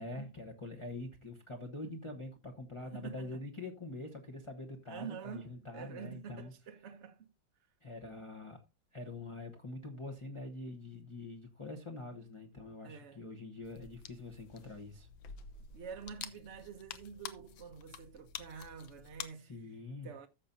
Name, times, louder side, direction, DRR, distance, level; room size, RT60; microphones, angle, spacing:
voice 1, 0.0-6.5 7.8-8.6 8.9-15.1 19.4-20.1, left 2 dB, 25° left, 0.6 m, -45 dB
voice 2, 2.9-3.4 4.9-7.3 12.8-13.2 15.7-19.8 20.0-20.3, right 6 dB, 55° right, 0.8 m, -47 dB
sound 1, 13.6-19.3, left 8 dB, 85° left, 1.6 m, -49 dB
14.0 x 6.7 x 2.6 m
omnidirectional pair, 2.1 m